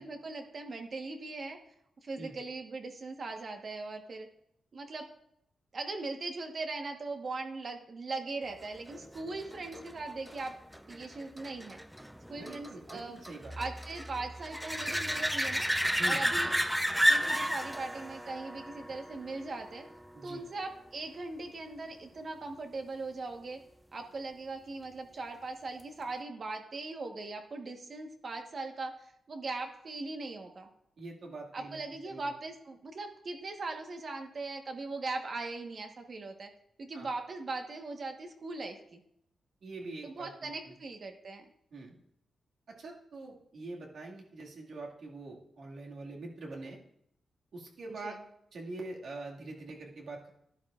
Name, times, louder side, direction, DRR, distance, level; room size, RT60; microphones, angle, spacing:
voice 1, 0.0-1.7 2.0-4.3 4.7-5.1 5.7-10.5 10.9-11.8 12.3-13.2 13.6-15.7 16.0-16.8 17.1-19.9 20.2-23.6 23.9-30.7 31.5-36.5 36.8-39.0 40.0-41.5 48.0-48.1, right 3 dB, 45° right, 4 dB, 1.3 m, -40 dB
sound 1, 8.9-20.2 25.8-25.9, equal, ahead, 0.5 m, -33 dB
voice 2, 12.3-13.6 16.0-16.2 20.1-20.4 31.0-32.3 36.9-37.1 39.6-40.8 41.7-42.0 42.7-46.8 47.5-48.2 48.5-50.3, right 2 dB, 70° right, -2 dB, 2.0 m, -44 dB
12.0 x 11.0 x 2.5 m, 0.76 s
cardioid pair, 110°, 0 cm